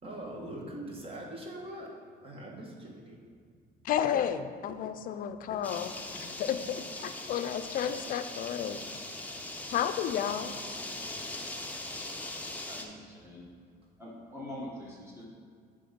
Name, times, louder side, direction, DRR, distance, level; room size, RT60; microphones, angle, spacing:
voice 1, 0.0-1.9 2.2-3.2 6.3-6.4 9.3-9.5 11.0-11.1, right 1 dB, 35° right, -1 dB, 1.4 m, -42 dB
voice 2, 3.8-8.8 9.7-10.5, left 9 dB, 55° left, 10 dB, 0.4 m, -32 dB
sound 1, 5.6-12.9, left 2 dB, 10° left, 0.7 m, -40 dB
voice 3, 12.7-13.4 14.0-15.3, left 1 dB, 15° right, -6 dB, 1.7 m, -44 dB
7.7 x 3.6 x 5.2 m, 2.1 s
cardioid pair, 110°, 17 cm